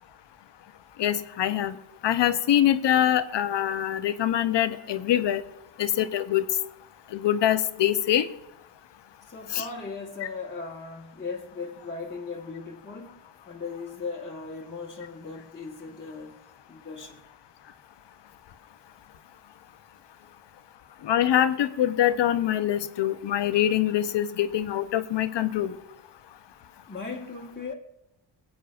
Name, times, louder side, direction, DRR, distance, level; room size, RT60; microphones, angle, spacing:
voice 1, 1.0-1.8 2.0-5.4 5.8-6.4 7.1-8.3 9.5-9.7 21.0-25.7, left 11 dB, 65° left, 0.8 m, -24 dB
voice 2, 9.2-13.2 13.4-16.4 16.7-17.2 20.2-20.3 26.9-27.7, left 4 dB, 20° left, 1.5 m, -38 dB
25.5 x 8.6 x 2.5 m
cardioid pair, 85°, 46 cm